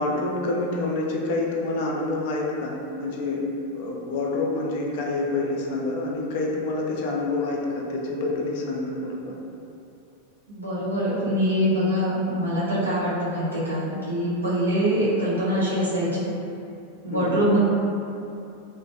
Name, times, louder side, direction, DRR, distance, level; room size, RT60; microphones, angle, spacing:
voice 1, 0.0-2.7 3.0-3.4 3.7-9.3 17.1-17.5, left 2 dB, 50° left, -2 dB, 0.4 m, -27 dB
voice 2, 10.5-16.3 17.0-17.6, equal, 75° right, -9 dB, 0.7 m, -24 dB
2.5 x 2.1 x 2.6 m, 2.7 s
figure-of-eight pair, 90°, 0 cm